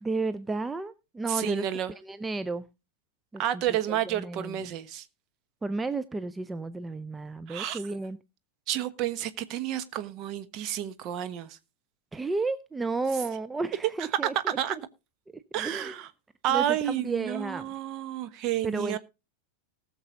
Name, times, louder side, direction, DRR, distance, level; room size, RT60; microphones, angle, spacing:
voice 1, 0.0-1.7 2.0-2.7 3.3-3.6 3.9-4.6 5.6-8.2 12.1-14.6 15.3-15.9 16.5-17.7 18.6-19.0, right 3 dB, 10° right, 0.5 m, -32 dB
voice 2, 1.3-1.9 3.4-5.1 7.5-7.8 8.7-11.6 14.6-14.8 15.5-16.1 16.4-19.0, right 11 dB, 40° right, 1.1 m, -30 dB
19.5 x 6.7 x 3.8 m
figure-of-eight pair, 90°, 0 cm